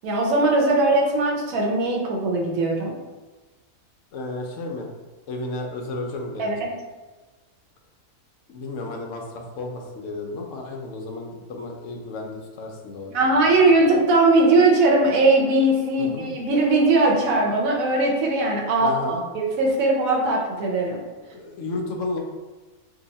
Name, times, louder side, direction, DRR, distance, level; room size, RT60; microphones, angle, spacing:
voice 1, 0.0-2.9 6.4-6.7 13.1-21.0, right 2 dB, 75° right, -1 dB, 1.2 m, -20 dB
voice 2, 4.1-4.9 5.3-6.7 8.5-13.5 16.1-16.3 18.8-19.2 21.3-22.2, left 2 dB, 65° left, 1 dB, 0.9 m, -33 dB
2.8 x 2.7 x 4.0 m, 1.2 s
omnidirectional pair, 1.5 m